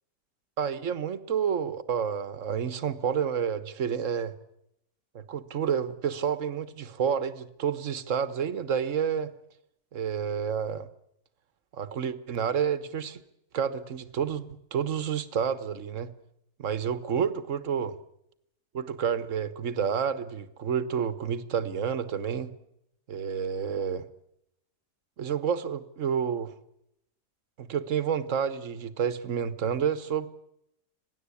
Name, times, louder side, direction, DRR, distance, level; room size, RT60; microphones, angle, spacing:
voice 1, 0.6-4.3 5.1-9.3 9.9-10.9 11.7-13.2 13.5-16.1 16.6-18.0 18.7-22.6 23.1-24.1 25.2-26.5 27.6-30.3, right 7 dB, 50° right, 14 dB, 1.5 m, -29 dB
26.5 x 18.0 x 8.5 m, 0.81 s
omnidirectional pair, 1.7 m